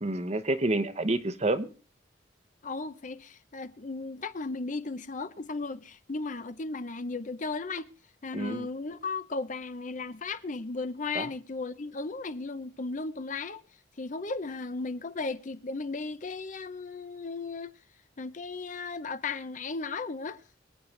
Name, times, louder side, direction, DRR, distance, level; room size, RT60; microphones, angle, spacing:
voice 1, 0.0-1.7 8.3-8.7 11.1-11.3, right 2 dB, 35° right, 1.0 m, -28 dB
voice 2, 2.6-7.9 8.2-13.6 14.0-17.7 18.2-20.4, left 3 dB, 40° left, 0.7 m, -35 dB
25.0 x 8.6 x 3.2 m
head